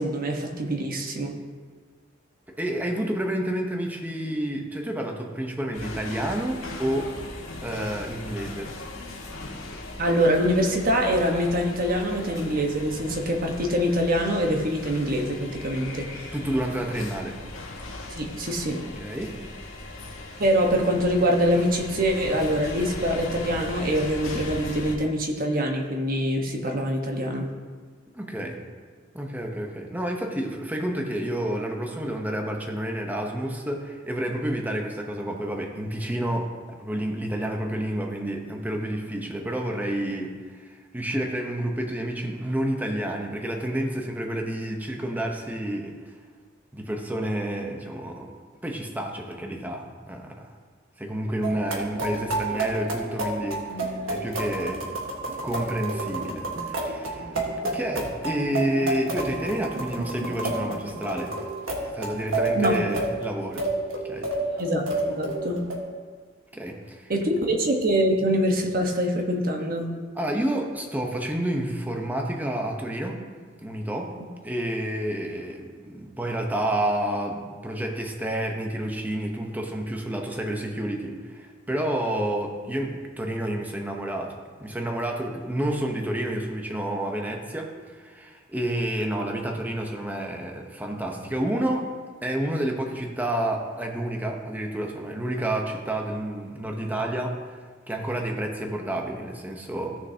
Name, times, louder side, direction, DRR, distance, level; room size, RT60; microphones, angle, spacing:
voice 1, 0.0-1.4 10.0-16.3 18.1-18.8 20.4-27.5 62.5-62.8 64.6-65.6 67.1-69.9, equal, 45° right, 1 dB, 1.2 m, -24 dB
voice 2, 2.6-7.1 7.6-8.7 16.3-17.4 18.8-19.4 28.1-28.6 29.1-40.4 40.6-45.9 46.7-48.3 48.6-50.5 51.0-53.6 54.1-54.9 55.4-57.3 57.6-61.4 61.9-63.7 64.1-64.3 66.5-67.1 70.2-73.2 73.6-74.1 74.4-84.3 84.6-91.9 92.2-97.6 97.9-100.0, right 1 dB, 10° right, 1 dB, 0.9 m, -29 dB
sound 1, 5.7-24.9, left 2 dB, 85° left, 1.6 m, -38 dB
sound 2, 51.4-65.8, right 2 dB, 85° right, 1.5 m, -30 dB
16.0 x 6.6 x 2.8 m, 1.5 s
head